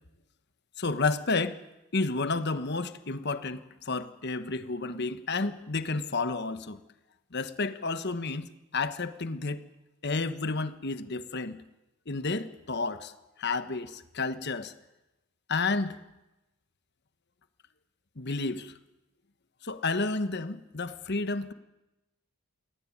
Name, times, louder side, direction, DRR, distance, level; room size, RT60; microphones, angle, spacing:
voice 1, 0.8-1.6 1.9-6.8 7.3-9.6 10.0-11.6 12.1-13.1 13.4-14.7 15.5-16.0 18.2-18.7 19.6-21.5, left 3 dB, 50° left, 12 dB, 1.3 m, -31 dB
21.0 x 18.0 x 9.8 m, 0.98 s
head